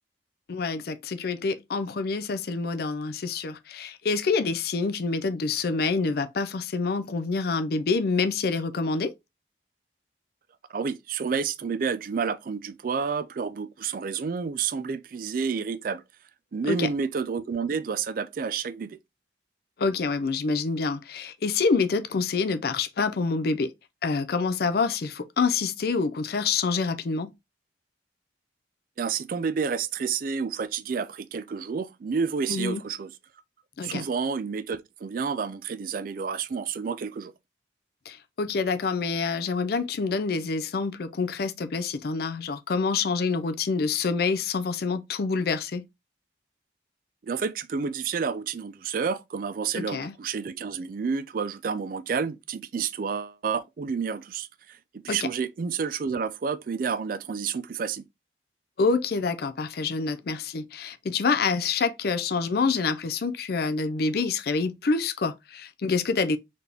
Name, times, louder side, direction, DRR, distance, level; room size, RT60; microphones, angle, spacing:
voice 1, 0.5-9.1 16.6-16.9 19.8-23.7 24.0-27.3 32.5-32.8 33.8-34.0 38.1-45.9 49.8-50.1 55.1-55.2 58.8-66.4, left 4 dB, 55° left, 0.4 m, -27 dB
voice 2, 10.7-16.0 16.5-19.0 29.0-33.1 33.8-37.3 47.2-54.8 55.0-58.0, right 5 dB, 45° right, 0.3 m, -30 dB
4.1 x 3.4 x 2.8 m
head